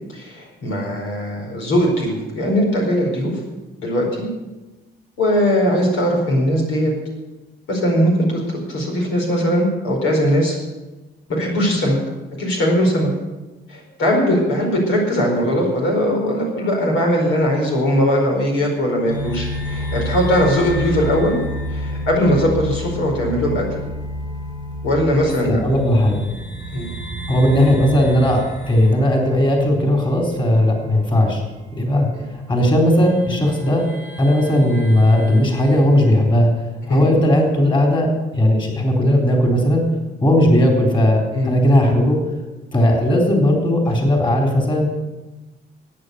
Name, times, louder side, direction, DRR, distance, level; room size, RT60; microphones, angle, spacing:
voice 1, 0.1-3.4 3.8-4.3 5.2-6.9 7.7-8.4 8.7-10.6 11.3-12.0 12.4-13.1 13.7-21.4 21.7-23.6 24.8-25.6 26.7-26.9 36.9-37.0 41.3-41.6, equal, 85° left, 0 dB, 4.8 m, -19 dB
sound 1, 19.0-31.0 31.3-31.4 32.4-32.5 33.0-36.1, left 1 dB, 65° left, 6.8 m, -30 dB
voice 2, 25.4-26.2 27.3-31.4 31.7-32.1 32.5-33.8 34.2-36.5 36.9-38.1 38.3-39.8 40.2-42.2 42.7-44.9, left 1 dB, 25° left, 1 dB, 3.8 m, -16 dB
14.0 x 9.3 x 8.2 m, 1.1 s
cardioid pair, 90°, 20 cm